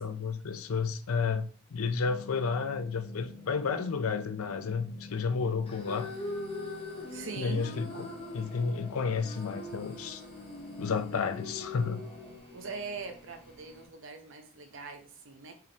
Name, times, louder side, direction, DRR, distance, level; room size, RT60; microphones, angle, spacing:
voice 1, 0.0-6.1 7.4-8.1 8.3-10.2 10.8-12.1, left 5 dB, 85° left, 0.5 m, -31 dB
sound 1, 2.0-12.4, left 4 dB, 35° right, 1.0 m, -49 dB
sound 2, 5.7-13.9, left 2 dB, 30° left, 0.9 m, -43 dB
voice 2, 7.1-7.6 12.5-15.5, right 4 dB, 65° right, 0.8 m, -42 dB
4.7 x 3.4 x 2.9 m
head